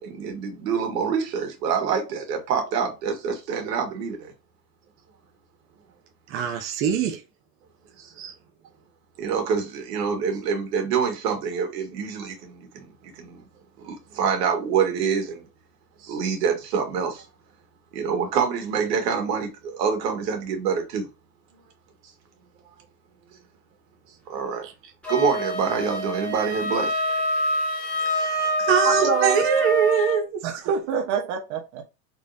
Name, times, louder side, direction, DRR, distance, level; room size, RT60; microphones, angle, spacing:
voice 1, 0.0-4.3 9.2-13.4 13.8-15.5 16.0-17.2 17.9-21.1 24.3-24.7 25.1-27.0, right 6 dB, 85° right, 1.7 m, -26 dB
voice 2, 6.3-7.2 8.2-8.3 28.7-30.4, right 7 dB, 25° right, 0.7 m, -22 dB
Wind instrument woodwind instrument, 25.0-30.2, right 1 dB, ahead, 1.1 m, -26 dB
voice 3, 28.8-29.4 30.4-31.8, right 6 dB, 50° right, 1.1 m, -26 dB
3.8 x 3.3 x 2.6 m
supercardioid pair, 150°, 48 cm